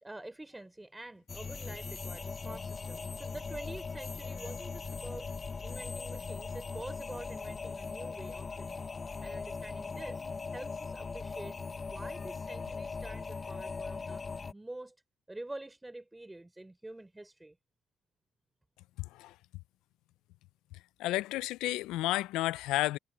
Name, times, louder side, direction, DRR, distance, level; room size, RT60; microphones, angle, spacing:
voice 1, 0.0-5.3 5.6-8.9 9.2-10.2 10.5-11.6 11.8-14.3 14.5-14.9 15.3-17.6, right 2 dB, 10° right, 4.4 m, -47 dB
sound 1, 1.3-14.5, left 4 dB, 25° left, 0.7 m, -40 dB
voice 2, 19.0-19.3 21.0-23.0, left 17 dB, 85° left, 0.3 m, -31 dB
cardioid pair, 115°, 0 cm